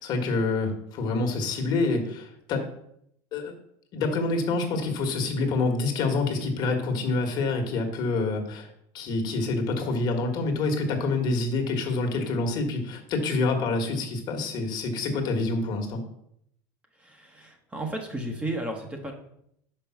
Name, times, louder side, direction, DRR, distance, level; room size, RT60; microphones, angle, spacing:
voice 1, 0.0-2.6 3.3-3.5 3.9-8.7 8.9-16.0, left 3 dB, 50° left, 3 dB, 1.5 m, -27 dB
voice 2, 17.0-19.1, right 1 dB, 15° right, 2 dB, 1.1 m, -33 dB
5.4 x 5.1 x 5.9 m, 0.73 s
supercardioid pair, 130°, 9 cm